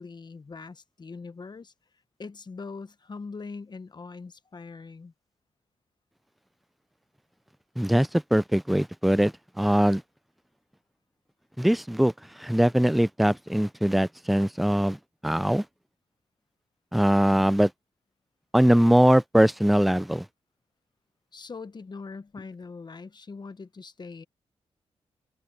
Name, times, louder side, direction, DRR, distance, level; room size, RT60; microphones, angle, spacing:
voice 1, 0.0-1.7 2.2-5.1 21.3-24.2, left 4 dB, 40° left, 1.2 m, -41 dB
voice 2, 7.8-10.0 11.6-12.1 12.4-15.0 15.2-15.6 16.9-17.7 18.5-20.3, equal, ahead, 0.4 m, -21 dB
open air
cardioid pair, 70°, 11 cm